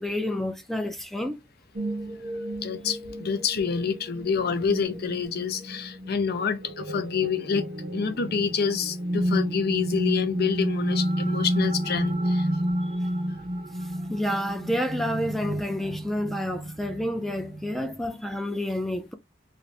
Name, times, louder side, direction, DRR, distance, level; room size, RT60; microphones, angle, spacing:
voice 1, 0.0-1.4 14.1-19.1, left 1 dB, ahead, 0.4 m, -29 dB
sound 1, 1.8-17.9, equal, 35° right, 0.6 m, -31 dB
voice 2, 2.6-7.7 7.9-12.5, left 6 dB, 55° left, 0.5 m, -27 dB
2.5 x 2.5 x 3.2 m
head